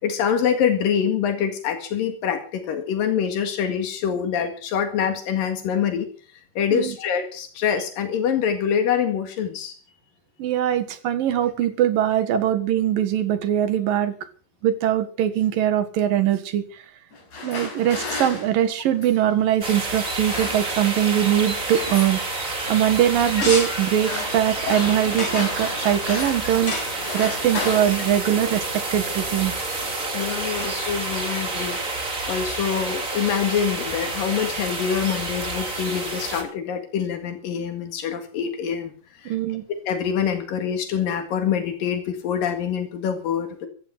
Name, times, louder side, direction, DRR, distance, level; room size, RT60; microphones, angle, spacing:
voice 1, 0.0-6.1 6.6-9.7 30.1-31.8 32.3-38.9 39.2-39.3 39.9-43.7, left 8 dB, 85° left, 7 dB, 3.6 m, -25 dB
voice 2, 10.4-14.1 14.6-16.6 17.4-22.2 22.7-26.8 27.1-29.5 39.3-39.6, right 11 dB, 85° right, 12 dB, 3.3 m, -22 dB
sound 1, 17.1-19.3 20.0-21.0 21.3-22.2 22.6-23.0 23.7-26.6 26.8-28.9 29.7-29.9 30.2-31.3, left 3 dB, 55° left, 6.1 m, -34 dB
sound 2, 19.6-36.4, right 2 dB, 25° right, 3.2 m, -29 dB
sound 3, 23.1-28.6, left 2 dB, 40° left, 7.3 m, -34 dB
15.5 x 14.5 x 5.9 m, 0.42 s
omnidirectional pair, 3.9 m